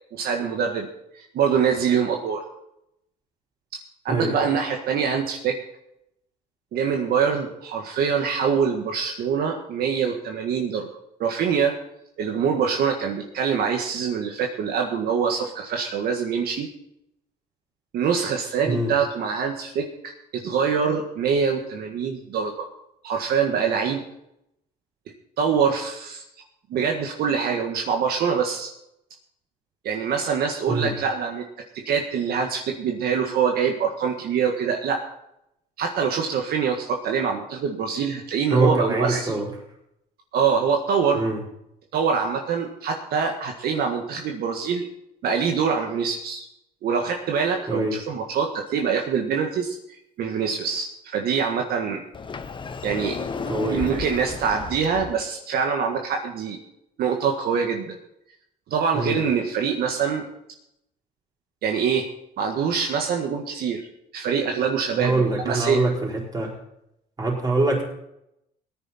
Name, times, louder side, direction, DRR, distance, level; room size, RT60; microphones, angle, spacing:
voice 1, 0.1-0.9 1.1-2.4 4.1-5.6 6.7-10.9 11.2-11.7 12.2-16.7 17.9-22.7 23.0-24.0 25.4-26.2 26.7-28.7 29.8-31.4 31.9-35.0 35.8-39.4 40.3-41.2 41.9-44.9 45.2-46.5 46.8-49.8 50.2-52.0 52.8-53.2 53.7-56.6 57.0-58.0 58.7-60.2 61.6-62.0 62.4-63.9 64.1-65.8, right 6 dB, 65° right, 2 dB, 1.7 m, -24 dB
voice 2, 38.5-39.5 41.1-41.4 47.7-48.0 53.5-53.9 58.9-59.2 65.0-66.5 67.2-67.8, right 2 dB, 25° right, -1 dB, 4.8 m, -24 dB
Sliding door, 52.1-55.1, left 5 dB, 30° left, 1.0 m, -33 dB
17.5 x 10.0 x 4.3 m, 0.81 s
cardioid pair, 110°, 17 cm